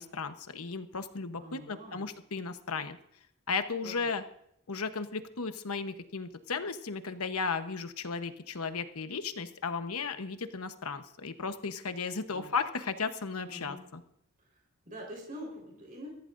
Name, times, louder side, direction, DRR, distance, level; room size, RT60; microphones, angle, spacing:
voice 1, 0.0-3.0 3.5-4.2 4.7-14.0, left 5 dB, 90° left, 9 dB, 1.0 m, -35 dB
voice 2, 1.4-2.1 3.8-3.9 12.3-12.6 13.5-13.8 14.8-16.1, equal, 40° right, -2 dB, 4.3 m, -45 dB
22.5 x 15.0 x 2.6 m, 0.75 s
head